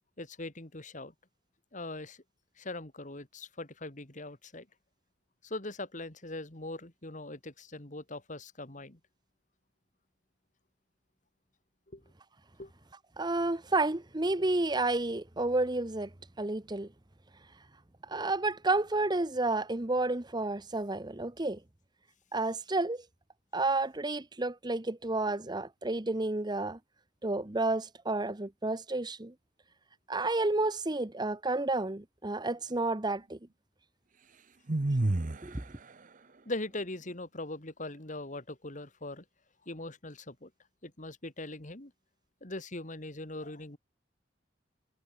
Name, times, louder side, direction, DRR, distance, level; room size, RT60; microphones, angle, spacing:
voice 1, 0.2-1.1 1.7-2.2 2.6-4.7 5.4-9.0 11.9-12.0 12.6-12.7 36.4-39.2 39.7-40.5 40.8-41.9 42.4-43.8, left 2 dB, 45° left, 2.9 m, -41 dB
voice 2, 13.2-16.1 16.4-16.9 18.1-21.6 22.3-23.0 23.5-26.8 27.2-29.3 30.1-33.4 35.4-35.6, right 2 dB, 25° right, 1.1 m, -31 dB
sound 1, 34.7-35.6, right 2 dB, 45° right, 0.9 m, -28 dB
head